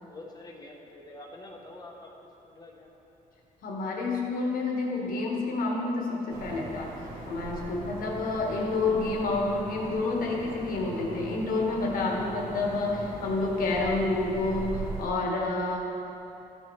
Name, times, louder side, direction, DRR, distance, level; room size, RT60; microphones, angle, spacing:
voice 1, 0.0-2.1 2.4-3.0, left 2 dB, 25° left, -1 dB, 0.9 m, -46 dB
voice 2, 3.6-6.9 7.3-15.8, left 3 dB, 75° left, -1 dB, 1.4 m, -29 dB
sound 1, 6.3-15.1, right 2 dB, 70° right, 1.5 m, -40 dB
13.0 x 5.6 x 3.3 m, 2.9 s
cardioid pair, 140°, 15 cm